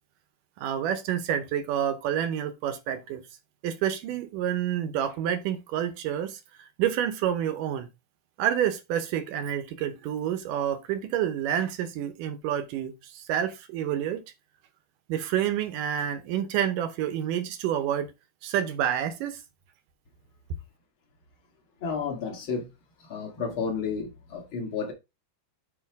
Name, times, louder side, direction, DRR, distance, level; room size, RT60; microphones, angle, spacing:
voice 1, 0.6-3.2 3.6-6.4 6.8-7.9 8.4-14.2 15.1-18.1 18.4-19.4, right 10 dB, 70° right, 2.2 m, -28 dB
voice 2, 21.8-22.7 23.0-24.9, left 5 dB, 45° left, 1.9 m, -31 dB
8.7 x 3.3 x 4.6 m
omnidirectional pair, 4.3 m